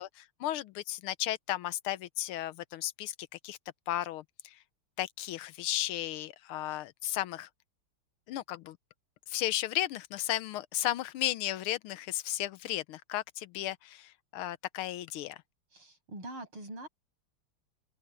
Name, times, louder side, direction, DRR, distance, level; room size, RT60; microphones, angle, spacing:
voice 1, 0.0-3.6 3.9-4.6 5.0-7.5 8.3-8.8 9.3-15.4, left 14 dB, 80° left, 1.6 m, -34 dB
voice 2, 15.7-16.9, right 1 dB, 70° right, 7.9 m, -43 dB
open air
omnidirectional pair, 2.4 m